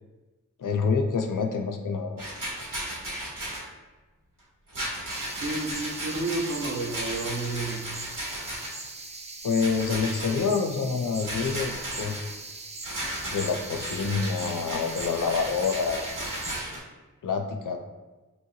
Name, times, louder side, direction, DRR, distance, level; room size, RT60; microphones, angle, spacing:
voice 1, 0.6-2.2 9.4-12.2 13.3-16.1 17.2-17.8, left 5 dB, 75° left, 5 dB, 0.5 m, -27 dB
Rattle, 2.2-3.7 4.7-8.9 9.6-10.5 11.2-12.3 12.8-16.8, right 1 dB, 90° right, 1.4 m, -35 dB
sound 1, 5.1-16.6, right 3 dB, 20° right, 0.3 m, -40 dB
voice 2, 5.4-7.8, right 2 dB, 45° right, -1 dB, 0.8 m, -31 dB
4.2 x 3.0 x 2.7 m, 1.2 s
wide cardioid pair, 70°, 32 cm